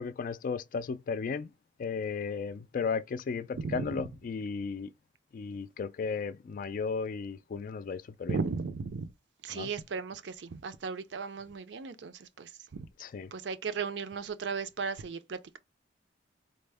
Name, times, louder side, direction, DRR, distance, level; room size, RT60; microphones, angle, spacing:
voice 1, 0.0-1.5 1.8-4.9 5.3-8.4 9.5-9.7 13.0-13.3, left 5 dB, 45° left, 0.3 m, -35 dB
voice 2, 3.5-4.0 8.3-9.1 9.4-12.9 13.3-15.6, right 5 dB, 65° right, 0.5 m, -36 dB
4.2 x 2.0 x 3.3 m
head